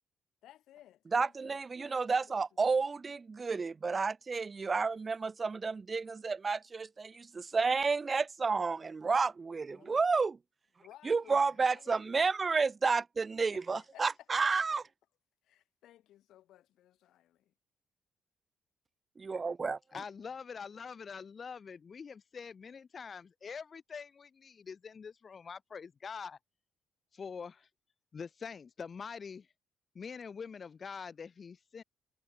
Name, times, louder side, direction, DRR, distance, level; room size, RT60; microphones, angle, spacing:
voice 1, 0.4-2.4 2.7-2.9 9.7-10.0 10.8-12.2 13.5-14.1 15.4-17.5, left 13 dB, 80° left, 1.8 m, -59 dB
voice 2, 1.1-10.4 11.0-14.8 19.2-19.8, right 4 dB, 30° right, 0.3 m, -31 dB
voice 3, 19.9-26.4 27.1-27.7 28.1-29.5 29.9-31.8, left 6 dB, 40° left, 1.1 m, -44 dB
cardioid pair, 90°, 0 cm